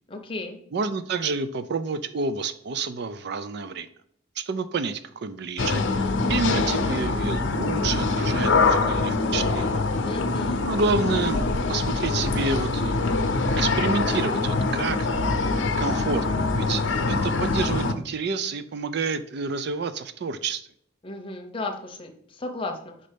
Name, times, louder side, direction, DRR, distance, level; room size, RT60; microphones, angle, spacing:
voice 1, 0.1-0.6 10.0-10.7 21.0-23.1, left 2 dB, 30° left, 4 dB, 0.9 m, -34 dB
voice 2, 0.7-3.9 4.4-9.8 10.6-13.1 13.5-15.1 15.8-20.6, right 4 dB, 60° right, 12 dB, 0.4 m, -29 dB
sound 1, 5.6-17.9, left 3 dB, 80° left, 0.6 m, -24 dB
5.2 x 4.3 x 5.1 m, 0.66 s
head